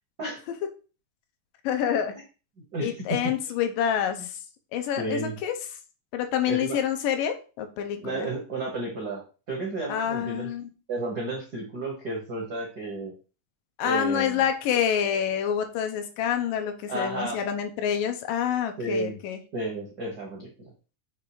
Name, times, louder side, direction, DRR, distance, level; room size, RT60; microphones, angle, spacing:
voice 1, 1.6-2.1 2.8-4.4 4.7-5.5 6.1-8.3 9.9-10.7 13.8-19.4, left 9 dB, 80° left, 6 dB, 2.5 m, -27 dB
voice 2, 2.7-3.3 5.0-5.3 6.5-6.8 8.0-9.2 9.5-10.5 10.9-13.1 13.8-14.4 16.9-17.4 18.8-19.2 19.5-20.5, right 2 dB, 60° right, -2 dB, 1.0 m, -32 dB
6.6 x 3.4 x 4.7 m, 0.35 s
omnidirectional pair, 3.9 m